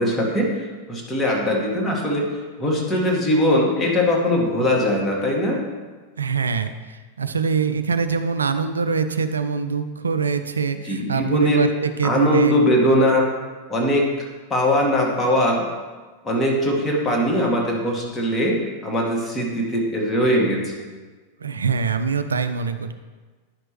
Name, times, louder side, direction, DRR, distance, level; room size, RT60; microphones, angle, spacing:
voice 1, 0.0-5.6 10.8-11.8 12.0-13.3 13.7-15.7 16.2-20.8, equal, 15° left, -2 dB, 1.8 m, -21 dB
voice 2, 6.2-12.6 21.4-22.9, right 5 dB, 75° right, 9 dB, 0.4 m, -24 dB
10.0 x 6.0 x 3.2 m, 1.3 s
figure-of-eight pair, 90°, 0 cm